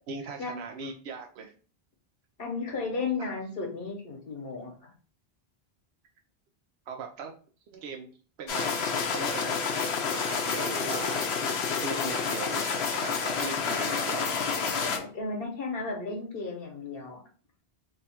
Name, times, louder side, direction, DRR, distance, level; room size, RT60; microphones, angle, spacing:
voice 1, 0.1-1.5 3.2-3.3 6.9-7.3 7.7-8.1 8.4-8.7 9.1-9.7 10.1-11.3 11.8-13.1 13.4-14.3, right 4 dB, 90° right, 2 dB, 0.8 m, -39 dB
voice 2, 2.4-4.9 15.0-17.2, left 4 dB, 65° left, 1 dB, 1.2 m, -34 dB
sound 1, 8.5-15.0, left 5 dB, 80° left, 0.9 m, -29 dB
2.9 x 2.3 x 4.1 m, 0.40 s
omnidirectional pair, 1.0 m